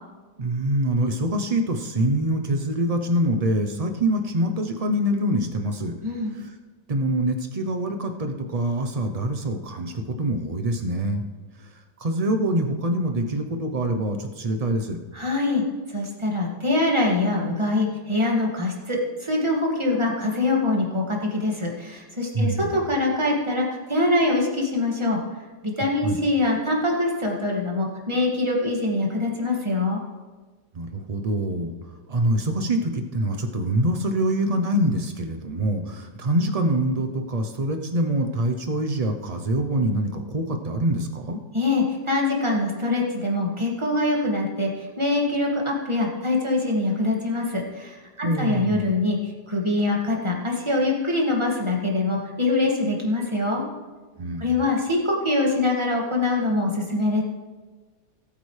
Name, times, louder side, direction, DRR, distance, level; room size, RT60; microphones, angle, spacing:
voice 1, 0.4-5.9 6.3-6.5 6.9-11.2 12.0-15.0 22.3-22.8 26.0-26.2 30.7-31.7 32.1-41.4 48.2-48.9 54.2-54.6, right 1 dB, 70° right, 5 dB, 0.3 m, -25 dB
voice 2, 15.1-15.6 15.9-25.2 25.6-30.0 41.5-49.2 49.5-53.6 54.4-57.2, left 2 dB, 15° right, -2 dB, 2.0 m, -24 dB
19.0 x 9.1 x 3.3 m, 1.3 s
omnidirectional pair, 1.9 m